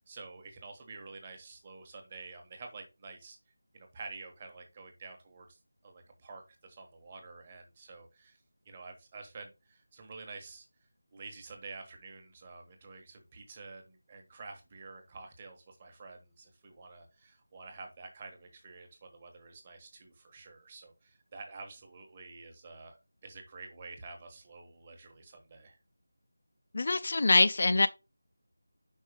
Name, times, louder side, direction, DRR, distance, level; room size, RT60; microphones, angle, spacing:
voice 1, 0.0-3.4 3.7-8.4 8.6-10.7 11.1-25.8, right 3 dB, 20° right, 1.2 m, -49 dB
voice 2, 26.7-27.9, left 3 dB, 40° left, 0.5 m, -24 dB
5.5 x 4.4 x 4.9 m
figure-of-eight pair, 175°, 0 cm